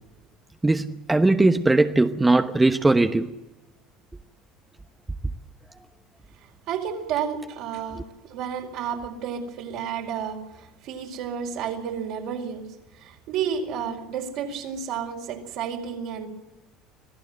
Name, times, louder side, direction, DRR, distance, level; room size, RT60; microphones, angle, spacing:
voice 1, 0.6-3.3, right 2 dB, 15° right, 1.1 m, -19 dB
voice 2, 6.7-16.3, right 7 dB, 65° right, 4.7 m, -31 dB
26.0 x 16.5 x 7.9 m
hypercardioid pair, 70°, 0 cm